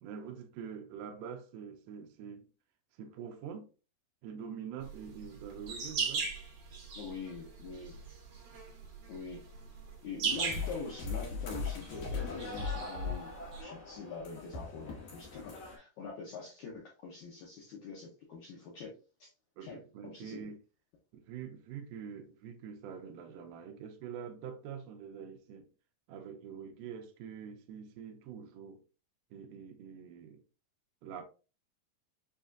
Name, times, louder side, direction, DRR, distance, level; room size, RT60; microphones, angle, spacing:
voice 1, 0.0-2.5 3.0-3.7 4.2-6.3 19.6-20.6 21.1-25.7 26.1-28.8 29.3-30.4 31.0-31.2, right 7 dB, 85° right, 1.9 m, -45 dB
sound 1, 4.8-13.6, right 5 dB, 60° right, 2.0 m, -39 dB
voice 2, 7.0-8.0 9.1-9.4 10.0-13.3 13.6-18.9 19.2-19.3 19.6-19.8 20.0-20.5, left 5 dB, 80° left, 1.7 m, -44 dB
sound 2, 10.3-15.8, left 4 dB, 60° left, 2.0 m, -40 dB
7.1 x 2.4 x 2.6 m
omnidirectional pair, 4.5 m